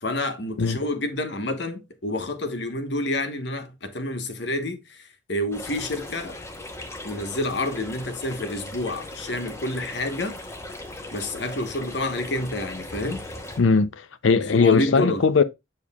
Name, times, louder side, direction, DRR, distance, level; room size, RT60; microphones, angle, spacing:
voice 1, 0.0-6.4 7.0-10.4 11.1-13.2 14.3-15.2, left 1 dB, 60° left, 1.2 m, -29 dB
sound 1, 5.5-13.6, left 1 dB, 15° left, 0.9 m, -38 dB
voice 2, 13.6-15.4, left 4 dB, 80° left, 0.6 m, -19 dB
7.3 x 6.4 x 2.3 m
head